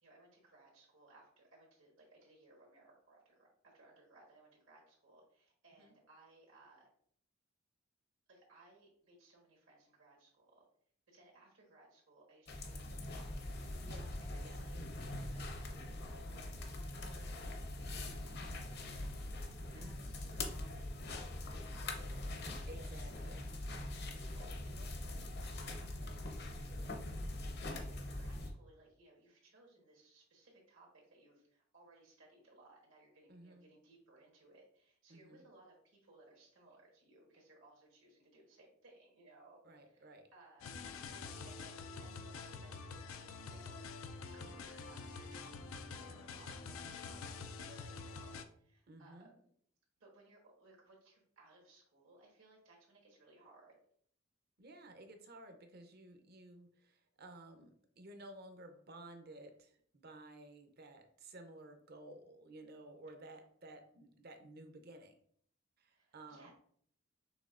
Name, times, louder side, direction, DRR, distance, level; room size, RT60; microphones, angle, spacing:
voice 1, 0.0-6.9 8.3-10.7 11.1-13.3 14.2-21.0 21.7-22.3 22.7-23.5 24.2-40.8 41.4-49.5 50.0-53.8 65.9-66.5, right 2 dB, 75° right, -2 dB, 1.4 m, -63 dB
sound 1, 12.5-28.5, left 1 dB, 50° left, 0.7 m, -43 dB
voice 2, 13.8-14.1 14.4-14.6 19.7-20.1 22.7-23.4 33.3-33.6 35.1-35.4 39.6-40.3 47.6-47.9 48.9-49.3 54.6-59.8 60.0-65.1 65.8-66.5, right 1 dB, 50° right, 6 dB, 0.7 m, -54 dB
sound 2, 40.6-48.4, left 4 dB, 85° left, 0.4 m, -47 dB
6.2 x 3.3 x 2.5 m, 0.62 s
head